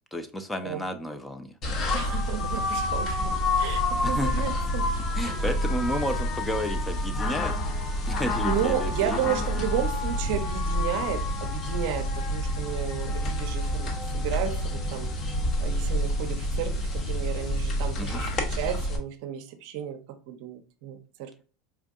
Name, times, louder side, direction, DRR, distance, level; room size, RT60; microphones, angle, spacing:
voice 1, 0.1-1.5 4.0-4.3 5.1-7.5 8.1-9.3 18.0-18.2, equal, 10° left, 0.5 m, -32 dB
sound 1, 1.6-19.0, left 1 dB, 40° left, 0.8 m, -28 dB
voice 2, 1.9-4.9 5.2-5.5 8.4-15.1 15.6-20.0 20.3-21.3, right 10 dB, 65° right, 0.5 m, -33 dB
4.4 x 2.5 x 2.4 m
hypercardioid pair, 95°, 0 cm